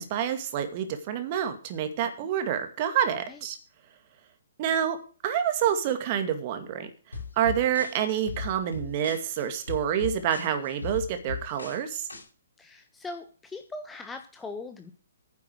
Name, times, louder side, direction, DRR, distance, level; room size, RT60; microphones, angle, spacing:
voice 1, 0.0-3.6 4.6-5.0 5.2-6.9 7.4-12.1, right 9 dB, 35° right, 8 dB, 2.2 m, -28 dB
sound 1, 7.1-12.2, left 4 dB, 80° left, 5.5 m, -38 dB
voice 2, 12.6-14.9, left 3 dB, 10° left, 6 dB, 1.1 m, -40 dB
10.0 x 8.3 x 6.4 m, 0.38 s
figure-of-eight pair, 125°, 0 cm